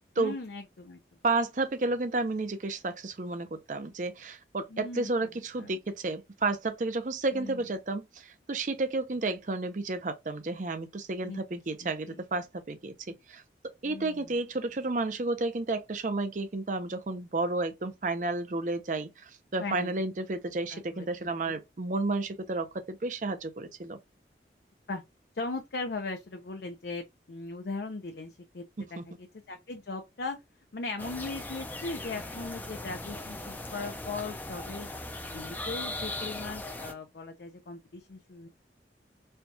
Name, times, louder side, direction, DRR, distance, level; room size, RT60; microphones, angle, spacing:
voice 1, 0.2-1.0 4.7-5.1 5.6-5.8 7.3-7.6 11.2-12.2 13.8-14.3 19.6-19.9 20.7-21.4 24.9-25.0 25.3-28.6 29.0-30.4 30.7-34.9 35.3-38.5, left 3 dB, 65° left, 0.5 m, -39 dB
voice 2, 1.2-24.0 28.8-29.0, right 2 dB, 45° right, 0.5 m, -32 dB
sound 1, 31.0-36.9, left 2 dB, 10° left, 0.4 m, -39 dB
4.4 x 2.3 x 2.6 m
head